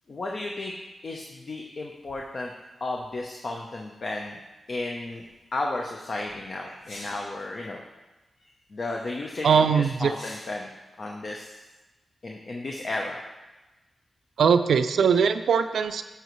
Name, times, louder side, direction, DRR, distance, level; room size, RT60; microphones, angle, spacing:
voice 1, 0.1-0.7 1.0-2.5 2.8-4.4 4.7-5.2 5.5-7.8 8.4-10.7 11.0-11.6 12.2-13.2, left 2 dB, 60° left, 0 dB, 0.8 m, -33 dB
sound 1, 4.7-4.8 6.8-7.5 10.0-10.8, left 1 dB, 75° left, 1.6 m, -44 dB
voice 2, 9.4-10.1 14.4-16.0, right 6 dB, 80° right, 9 dB, 0.3 m, -21 dB
9.0 x 7.0 x 3.2 m, 1.1 s
supercardioid pair, 45°, 0 cm